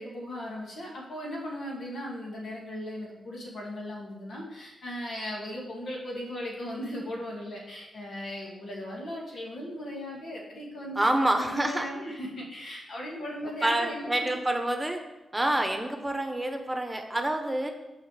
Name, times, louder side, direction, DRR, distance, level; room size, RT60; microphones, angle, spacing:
voice 1, 0.0-14.3, left 1 dB, 70° left, -3 dB, 2.3 m, -37 dB
voice 2, 10.9-11.9 13.6-15.0 15.3-17.7, right 1 dB, 15° right, 5 dB, 1.1 m, -27 dB
6.5 x 5.0 x 6.6 m, 1.0 s
cardioid pair, 60°, 0 cm